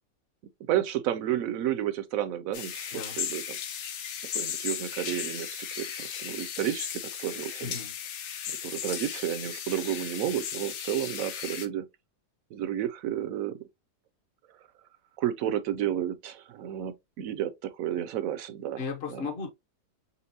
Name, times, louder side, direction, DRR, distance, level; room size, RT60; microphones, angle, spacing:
voice 1, 0.7-3.6 4.3-7.8 8.5-11.9 12.5-13.6 15.2-18.8 19.1-19.3, right 11 dB, 70° right, 0.8 m, -31 dB
sound 1, 2.5-11.7, left 8 dB, 75° left, 1.2 m, -36 dB
voice 2, 7.6-7.9 18.8-19.5, left 5 dB, 50° left, 0.7 m, -35 dB
4.3 x 3.4 x 2.7 m
omnidirectional pair, 1.8 m